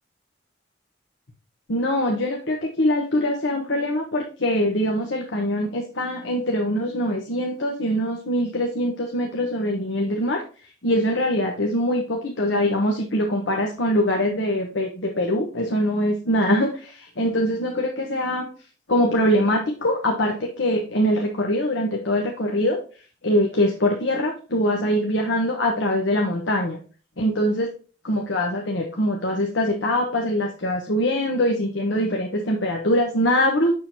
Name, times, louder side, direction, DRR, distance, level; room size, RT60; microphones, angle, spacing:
voice 1, 1.7-10.4 10.8-18.5 18.9-22.8 23.2-26.8 27.2-27.7 28.0-33.7, left 1 dB, 85° left, 0 dB, 1.1 m, -23 dB
6.7 x 6.5 x 2.8 m, 0.38 s
head